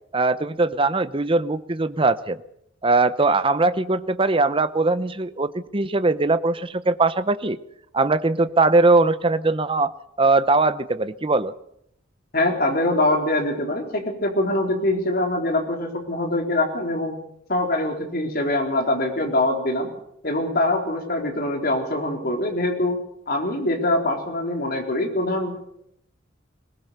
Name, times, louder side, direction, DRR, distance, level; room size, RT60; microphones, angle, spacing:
voice 1, 0.1-2.4 2.8-7.6 7.9-9.9 10.2-11.5, right 3 dB, 25° right, 13 dB, 0.8 m, -20 dB
voice 2, 12.3-17.1 17.5-19.9 20.2-25.6, left 1 dB, 50° left, 2 dB, 4.0 m, -23 dB
21.0 x 19.5 x 6.8 m, 0.75 s
head